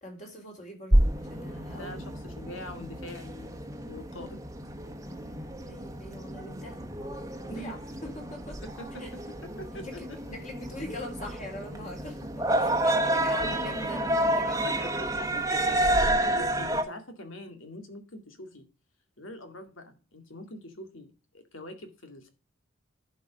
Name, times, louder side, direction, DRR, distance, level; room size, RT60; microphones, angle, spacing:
voice 1, 0.0-2.0 2.3-2.5 5.0-6.8 7.4-8.6 9.0-9.1 9.7-15.9, left 1 dB, 35° left, 2 dB, 3.6 m, -43 dB
sound 1, 0.9-16.8, right 1 dB, 15° right, 1.1 m, -29 dB
voice 2, 1.7-4.5 7.4-7.7 8.6-10.4 12.5-13.5 14.6-15.7 16.0-18.7 19.2-22.3, left 1 dB, 80° left, 6 dB, 2.2 m, -44 dB
11.0 x 5.4 x 5.0 m, 0.34 s
head